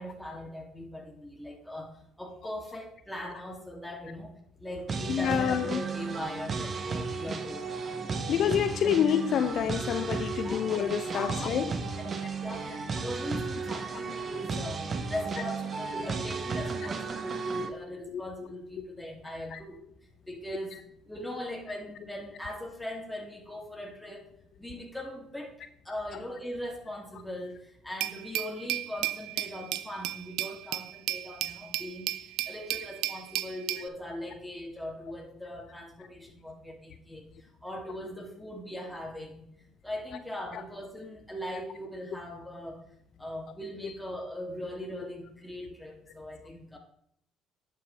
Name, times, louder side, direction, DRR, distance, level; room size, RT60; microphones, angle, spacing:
voice 1, 0.0-4.3 4.6-7.9 8.8-8.9 10.2-10.7 11.1-12.1 12.4-19.8 20.3-20.8 21.0-24.3 24.6-25.6 25.8-39.4 39.8-42.8 43.2-46.8, left 1 dB, 5° left, 2.4 m, -40 dB
sound 1, 4.9-17.7, right 4 dB, 40° right, 0.9 m, -34 dB
voice 2, 5.1-5.8 8.3-11.7 18.1-18.2 19.5-19.6, left 9 dB, 60° left, 0.4 m, -27 dB
Glass, 28.0-33.9, right 15 dB, 75° right, 0.4 m, -34 dB
10.5 x 6.2 x 3.3 m
hypercardioid pair, 65°, 0 cm